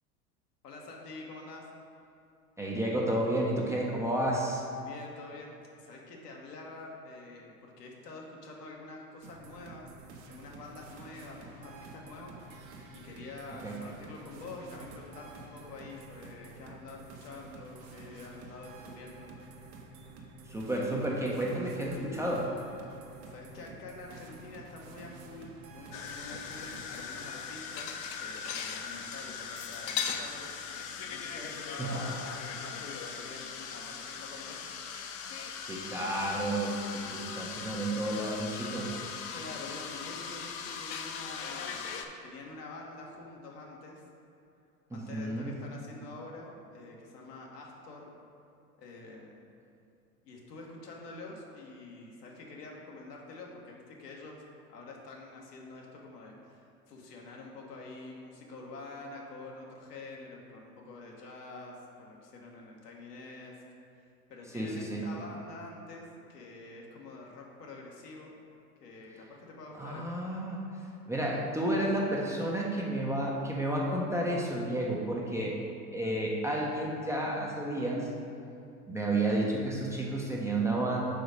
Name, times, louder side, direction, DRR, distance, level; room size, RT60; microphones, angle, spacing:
voice 1, 0.6-1.7 4.8-9.9 10.3-19.3 23.3-34.6 39.3-44.0 44.9-48.1 48.8-49.5 50.2-54.4 54.7-63.6 63.9-68.4 68.8-70.1, left 2 dB, 80° left, -1 dB, 1.2 m, -47 dB
voice 2, 2.6-4.6 13.6-13.8 20.5-22.5 31.8-32.0 35.6-38.9 44.9-45.6 64.5-65.1 69.7-70.6 71.1-75.6 75.9-78.1 78.9-81.1, right 1 dB, 5° right, -4 dB, 0.4 m, -31 dB
pure ultra night club music loop demo by kk, 9.2-27.0, right 3 dB, 60° right, 1.0 m, -50 dB
sound 1, 25.9-42.1, left 6 dB, 40° left, 0.6 m, -39 dB
4.9 x 3.9 x 5.1 m, 2.6 s
hypercardioid pair, 90°, 47 cm